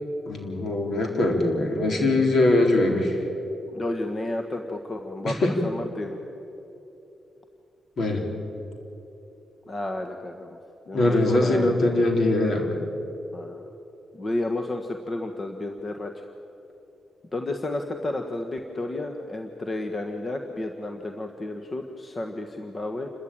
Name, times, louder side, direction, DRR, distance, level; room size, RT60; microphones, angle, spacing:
voice 1, 0.3-3.2 5.3-5.5 8.0-8.3 10.9-12.8, left 2 dB, 65° left, 2 dB, 3.9 m, -22 dB
voice 2, 3.7-6.2 9.7-10.6 10.9-11.7 13.3-13.7 14.1-16.3 17.3-23.1, left 2 dB, 35° left, 4 dB, 1.5 m, -32 dB
28.5 x 13.5 x 9.0 m, 3.0 s
cardioid pair, 75°, 0 cm